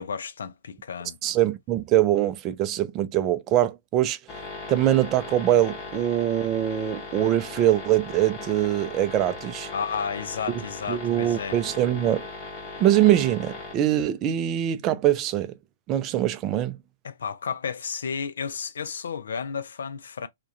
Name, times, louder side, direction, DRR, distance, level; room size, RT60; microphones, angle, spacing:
voice 1, 0.0-1.2 9.7-11.6 17.0-20.3, left 6 dB, 70° left, 0.3 m, -32 dB
voice 2, 1.2-4.2 4.7-9.7 10.9-12.3 12.8-15.5 15.9-16.8, right 12 dB, 30° right, 0.3 m, -23 dB
sound 1, 4.3-13.8, left 3 dB, 30° left, 1.0 m, -38 dB
2.3 x 2.1 x 2.6 m
hypercardioid pair, 120°, 0 cm